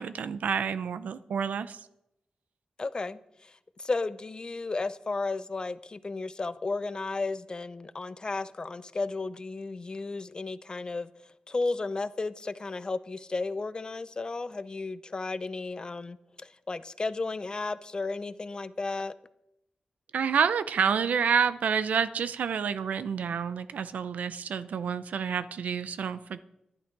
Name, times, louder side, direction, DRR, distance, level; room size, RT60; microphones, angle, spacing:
voice 1, 0.0-1.8 20.1-26.4, right 7 dB, 85° right, 0.6 m, -28 dB
voice 2, 2.8-3.2 3.8-11.1 11.5-16.2 16.7-19.1, left 3 dB, 35° left, 0.6 m, -33 dB
11.5 x 11.0 x 4.7 m
wide cardioid pair, 85°, 3 cm